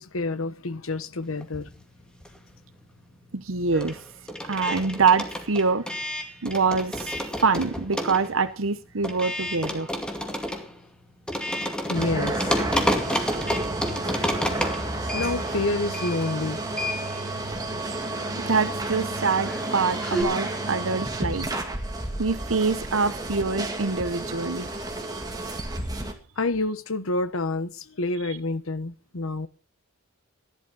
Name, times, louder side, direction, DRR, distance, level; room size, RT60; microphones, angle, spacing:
voice 1, 0.0-1.7 11.8-12.4 15.1-16.6 26.4-29.5, left 2 dB, 80° left, 14 dB, 1.1 m, -28 dB
sound 1, 1.4-2.7 2.9-20.2, equal, 5° left, 2.2 m, -31 dB
voice 2, 3.3-4.0 4.4-5.9 6.4-9.9 17.1-17.3 18.5-21.5 22.2-24.7 28.2-28.4, right 4 dB, 75° right, 12 dB, 0.9 m, -25 dB
sound 2, 11.9-26.1, right 2 dB, 20° right, 2.4 m, -31 dB
15.0 x 11.5 x 5.4 m, 0.34 s
head